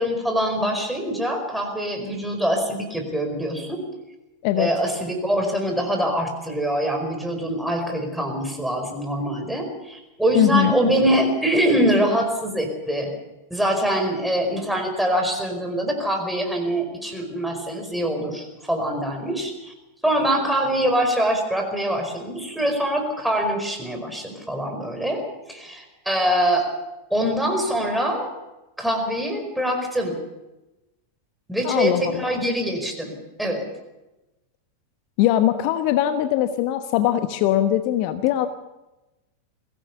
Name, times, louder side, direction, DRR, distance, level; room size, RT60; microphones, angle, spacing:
voice 1, 0.0-3.8 4.6-13.1 13.5-19.7 20.0-26.7 27.1-28.3 28.8-30.2 31.5-33.1 33.4-33.7, right 1 dB, ahead, 3 dB, 4.8 m, -24 dB
voice 2, 10.3-10.7 31.6-32.4 35.2-38.5, left 12 dB, 45° left, 10 dB, 1.1 m, -21 dB
22.5 x 17.0 x 7.1 m, 1.0 s
figure-of-eight pair, 90°, 0 cm